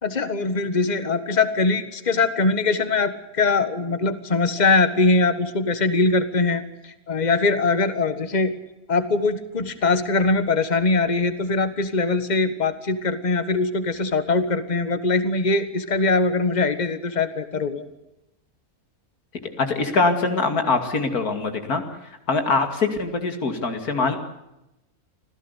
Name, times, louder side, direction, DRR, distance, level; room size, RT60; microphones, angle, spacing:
voice 1, 0.0-8.5 8.9-17.8, left 3 dB, 30° left, 12 dB, 1.6 m, -22 dB
voice 2, 19.6-21.8 22.3-24.2, left 3 dB, 85° left, 6 dB, 3.0 m, -23 dB
26.5 x 16.0 x 8.3 m, 0.93 s
omnidirectional pair, 1.5 m